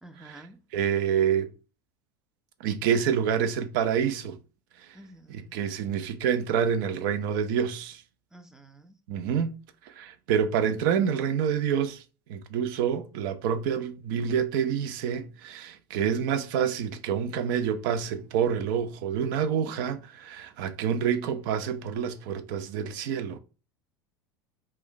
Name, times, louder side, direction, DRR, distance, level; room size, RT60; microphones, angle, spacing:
voice 1, 0.0-0.6 4.9-5.7 8.3-9.0, right 1 dB, 5° right, 0.4 m, -50 dB
voice 2, 0.7-1.5 2.6-4.4 5.3-8.0 9.1-9.5 9.9-12.0 12.3-23.4, right 8 dB, 60° right, 0.4 m, -27 dB
2.4 x 2.2 x 3.7 m
hypercardioid pair, 85°, 12 cm